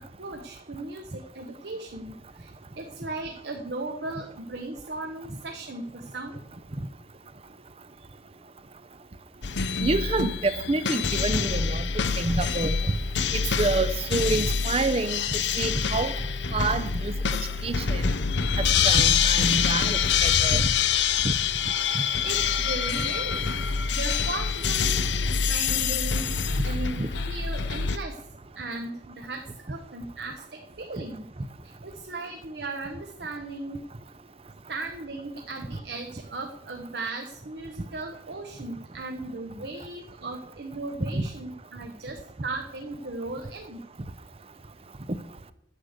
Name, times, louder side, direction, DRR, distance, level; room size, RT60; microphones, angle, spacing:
voice 1, 0.2-6.4 22.2-23.5 23.9-26.3 26.6-28.2 28.5-29.4 29.7-31.2 31.6-33.8 34.7-43.8, right 2 dB, 70° right, 3 dB, 1.1 m, -37 dB
sound 1, 9.4-28.0, left 6 dB, 85° left, 0.7 m, -26 dB
voice 2, 9.8-11.8 12.2-12.8 13.3-16.1 16.5-17.1 17.6-18.1 18.8-20.7 21.2-21.3 27.0-27.1 41.1-41.2, right 3 dB, 35° right, 13 dB, 0.6 m, -27 dB
9.9 x 6.5 x 8.0 m, 0.78 s
head